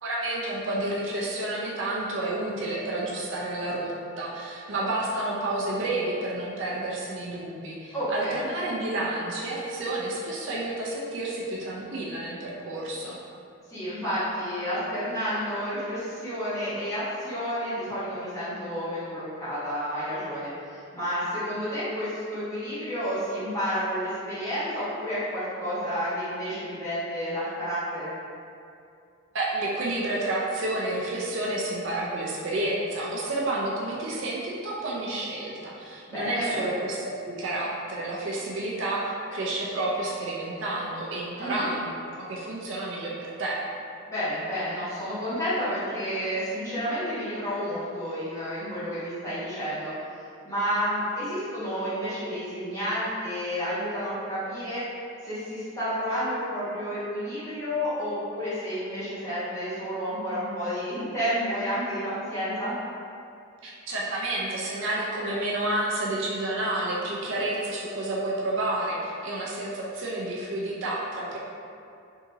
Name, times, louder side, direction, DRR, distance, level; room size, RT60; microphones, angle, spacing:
voice 1, 0.0-13.2 29.3-41.9 42.2-43.6 63.6-71.4, right 2 dB, 60° right, -4 dB, 0.4 m, -30 dB
voice 2, 7.9-8.4 13.7-28.1 36.1-36.6 41.4-41.7 44.1-54.8 55.2-62.8, equal, 15° left, -14 dB, 1.3 m, -30 dB
3.5 x 2.9 x 2.7 m, 2.5 s
head